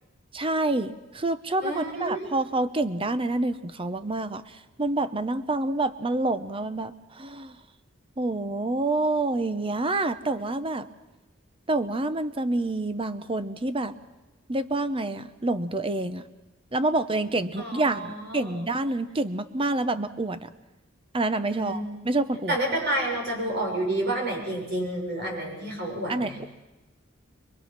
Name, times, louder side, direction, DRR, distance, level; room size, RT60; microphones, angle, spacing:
voice 1, 0.3-7.6 8.2-10.9 11.7-13.9 14.5-16.2 16.7-20.5 21.1-22.6 26.1-26.5, right 2 dB, 30° right, 11 dB, 0.9 m, -27 dB
voice 2, 1.6-2.3 17.6-18.6 21.5-21.9 22.5-26.4, right 1 dB, 60° right, -1 dB, 6.6 m, -30 dB
24.5 x 22.5 x 6.1 m, 1.1 s
head